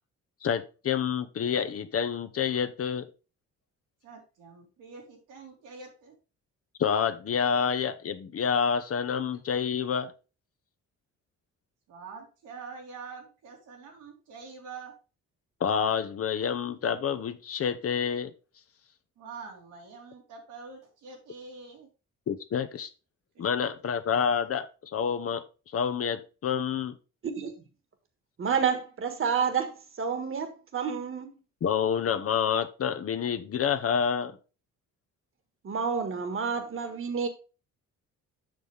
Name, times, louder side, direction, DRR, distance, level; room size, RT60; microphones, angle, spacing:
voice 1, 0.4-3.1 6.8-10.1 15.6-18.3 22.3-22.9 23.4-25.4 25.7-27.0 31.6-34.4, left 7 dB, 50° left, 0.9 m, -28 dB
voice 2, 4.0-6.1 11.9-14.9 19.2-21.9 23.3-23.4, right 5 dB, 90° right, 3.0 m, -45 dB
voice 3, 28.4-31.3 35.6-37.3, right 6 dB, 45° right, 1.6 m, -29 dB
7.7 x 6.2 x 3.4 m
cardioid pair, 90°, 30 cm